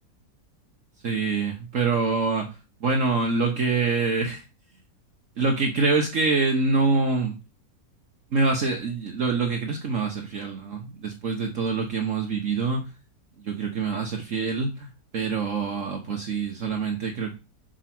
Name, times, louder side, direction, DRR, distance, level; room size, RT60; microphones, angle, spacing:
voice 1, 1.0-4.4 5.4-7.4 8.3-12.9 13.4-17.3, right 4 dB, 55° right, 2 dB, 1.4 m, -25 dB
5.3 x 5.1 x 6.0 m, 0.29 s
omnidirectional pair, 1.7 m